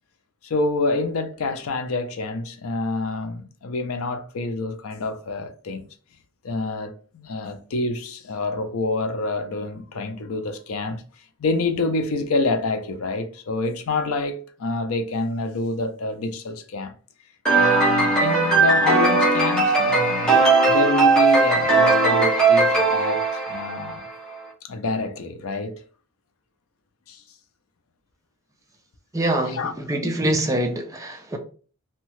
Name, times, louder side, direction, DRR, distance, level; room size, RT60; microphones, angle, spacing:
voice 1, 0.4-5.8 6.4-11.0 11.4-16.9 17.5-23.2 23.5-24.0 24.6-25.8 27.1-27.2 29.5-29.7 30.0-30.1, left 3 dB, 65° left, 0.4 m, -27 dB
sound 1, 17.5-24.1, right 3 dB, 5° left, 0.8 m, -18 dB
voice 2, 29.1-31.4, right 1 dB, 15° right, 0.4 m, -25 dB
2.7 x 2.2 x 3.0 m
head